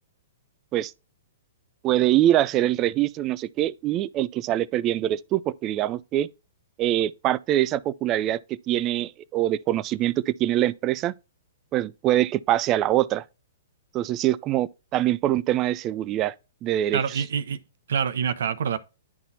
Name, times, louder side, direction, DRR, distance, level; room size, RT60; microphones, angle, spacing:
voice 1, 1.8-6.3 6.8-11.1 11.7-13.2 13.9-16.3 16.6-17.2, right 13 dB, 30° right, 0.4 m, -24 dB
voice 2, 16.9-17.6 17.9-18.8, right 7 dB, 70° right, 0.8 m, -26 dB
10.5 x 4.1 x 2.8 m
hypercardioid pair, 125°, 0 cm